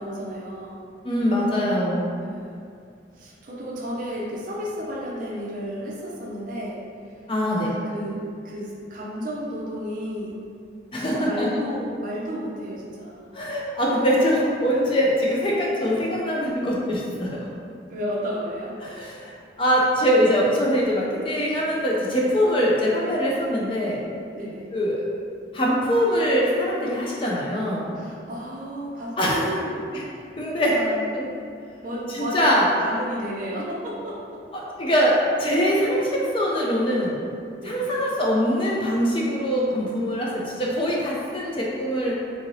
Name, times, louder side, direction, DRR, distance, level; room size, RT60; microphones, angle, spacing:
voice 1, 0.0-0.9 2.2-2.7 3.2-6.8 7.4-10.4 11.0-13.3 17.9-18.8 24.4-24.8 28.0-29.7 30.1-30.2 30.7-31.1 31.8-34.4 37.6-38.0, equal, 45° right, -3 dB, 0.4 m, -32 dB
voice 2, 1.0-2.1 7.3-7.7 10.9-11.5 13.3-17.4 18.8-19.3 19.6-24.0 24.7-25.0 25.5-27.9 29.2-29.5 29.9-30.0 30.4-30.8 31.2-31.3 32.1-32.7 34.5-37.2 37.6-42.1, equal, 30° left, -4 dB, 0.4 m, -23 dB
2.8 x 2.5 x 3.0 m, 2.3 s
head